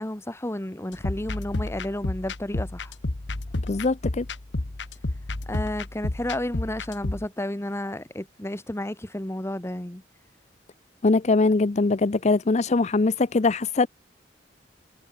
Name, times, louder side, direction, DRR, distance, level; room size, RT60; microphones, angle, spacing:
voice 1, 0.0-2.9 5.5-10.0, left 1 dB, 15° left, 1.3 m, -32 dB
sound 1, 0.9-7.3, left 2 dB, 75° left, 1.3 m, -31 dB
voice 2, 3.7-4.3 11.0-13.9, left 3 dB, 40° left, 0.6 m, -22 dB
head